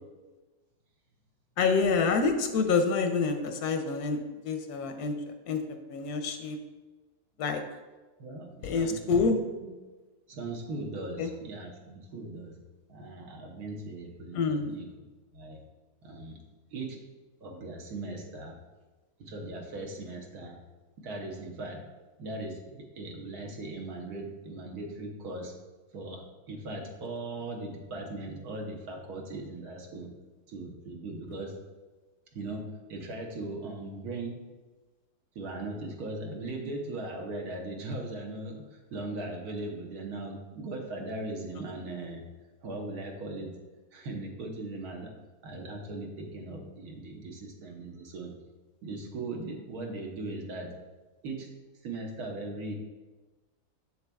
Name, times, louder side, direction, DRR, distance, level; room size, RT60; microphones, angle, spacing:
voice 1, 1.6-4.2 4.4-5.6 5.9-6.6 7.4-7.6 8.6-9.4 11.2-11.3 14.3-14.8, left 4 dB, 85° left, 6 dB, 1.1 m, -27 dB
voice 2, 8.2-9.7 10.3-12.6 12.9-14.9 15.3-15.6 16.0-16.4 16.7-17.0 17.4-18.6 19.2-20.6 21.0-21.8 22.2-25.5 25.9-30.1 30.5-31.5 32.3-34.4 35.3-42.2 42.6-43.5 43.9-45.1 45.4-48.3 48.8-50.7 51.2-51.5 51.8-52.7, right 2 dB, 80° right, 2 dB, 1.5 m, -39 dB
7.0 x 6.8 x 2.3 m, 1.2 s
omnidirectional pair, 1.6 m